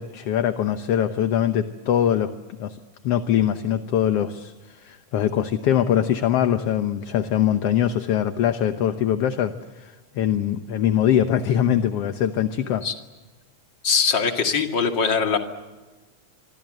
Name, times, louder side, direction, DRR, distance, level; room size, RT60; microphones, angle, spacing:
voice 1, 0.0-2.3 2.6-2.8 3.0-12.8, left 10 dB, 65° left, 9 dB, 1.7 m, -22 dB
voice 2, 13.8-15.4, left 5 dB, 40° left, 5 dB, 2.6 m, -21 dB
27.0 x 24.5 x 7.8 m, 1.3 s
omnidirectional pair, 3.6 m